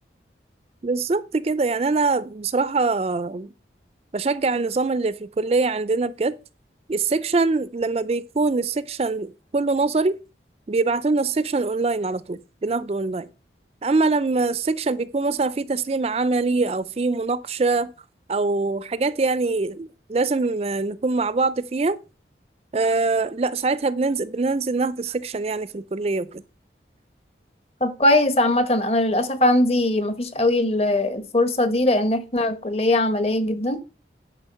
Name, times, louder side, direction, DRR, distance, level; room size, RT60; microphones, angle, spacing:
voice 1, 0.8-3.5 4.1-6.3 6.9-10.2 10.7-13.3 13.8-17.9 18.3-22.0 22.7-26.4, right 3 dB, 35° right, 0.4 m, -23 dB
voice 2, 27.8-33.8, left 1 dB, 35° left, 1.0 m, -20 dB
10.5 x 5.2 x 5.6 m
head